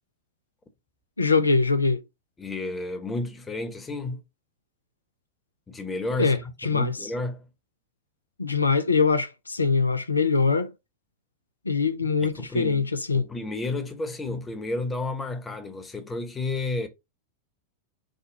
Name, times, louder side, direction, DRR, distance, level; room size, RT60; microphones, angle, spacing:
voice 1, 1.2-2.0 6.2-7.1 8.4-10.7 11.7-13.3, left 4 dB, 80° left, 0.4 m, -23 dB
voice 2, 2.4-4.2 5.7-7.4 12.2-12.9 13.1-16.9, left 2 dB, 15° left, 1.0 m, -32 dB
5.0 x 2.2 x 3.9 m
figure-of-eight pair, 90°, 0 cm